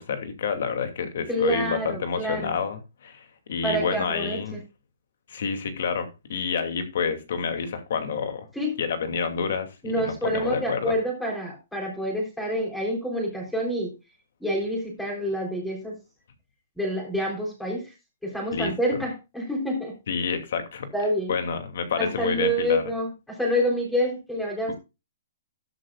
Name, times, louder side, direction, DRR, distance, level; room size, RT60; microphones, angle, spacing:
voice 1, 0.0-4.6 5.3-8.5 8.8-10.9 18.5-18.7 20.1-20.9 21.3-22.8, left 6 dB, 60° left, 8 dB, 2.5 m, -29 dB
voice 2, 1.3-2.5 3.6-4.6 8.6-8.7 9.8-13.9 14.4-15.9 16.8-17.8 18.2-19.9 20.9-21.3 22.2-24.8, equal, 5° left, 0 dB, 3.8 m, -27 dB
12.5 x 11.5 x 2.4 m, 0.26 s
hypercardioid pair, 170°, 0 cm